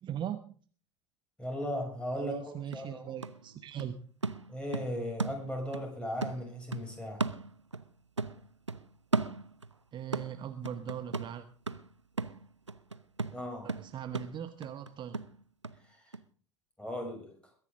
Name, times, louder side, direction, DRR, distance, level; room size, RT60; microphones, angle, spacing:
voice 1, 0.0-0.5 2.1-4.0 9.9-11.5 13.6-15.2, right 9 dB, 30° right, 10 dB, 1.0 m, -40 dB
voice 2, 1.4-3.1 4.5-7.3 13.3-13.7 15.9-16.2 16.8-17.3, equal, 5° left, 2 dB, 6.7 m, -37 dB
sound 1, 2.3-2.4 2.7-5.9 6.2-7.9 8.2-9.8 10.1-15.8 16.1-16.2, right 3 dB, 90° right, 0.6 m, -37 dB
22.0 x 10.5 x 3.7 m, 0.43 s
figure-of-eight pair, 75°, 15 cm